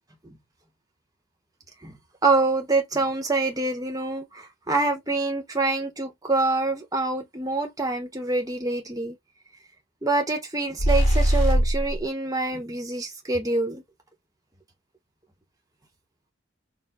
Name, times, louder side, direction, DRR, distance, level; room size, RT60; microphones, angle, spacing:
voice 1, 2.2-9.2 10.0-13.8, right 3 dB, 20° right, 1.0 m, -26 dB
sound 1, 10.8-12.0, equal, 35° left, 2.2 m, -20 dB
4.5 x 2.2 x 3.7 m
head